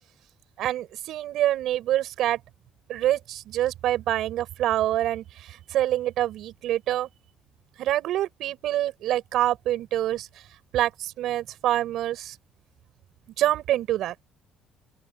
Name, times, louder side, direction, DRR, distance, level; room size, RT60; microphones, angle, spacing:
voice 1, 0.6-2.4 2.9-7.1 7.8-10.3 10.7-12.4 13.4-14.1, right 13 dB, 65° right, 6.3 m, -26 dB
open air
cardioid pair, 165°, 0 cm